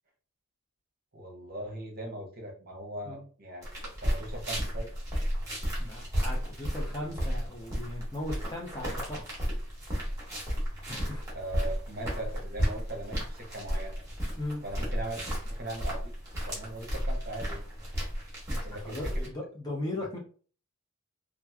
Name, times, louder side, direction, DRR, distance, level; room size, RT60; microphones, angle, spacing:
voice 1, 1.1-4.9 11.3-14.0 14.6-16.1 16.5-17.6 17.9-18.0 18.6-19.3, right 1 dB, 45° right, 1 dB, 0.7 m, -40 dB
sound 1, 3.6-19.3, equal, 15° right, 1.1 m, -33 dB
voice 2, 5.8-9.4 10.9-11.2 14.4-14.6 18.5-20.2, left 1 dB, 20° left, -1 dB, 0.6 m, -38 dB
2.9 x 2.4 x 2.3 m, 0.41 s
head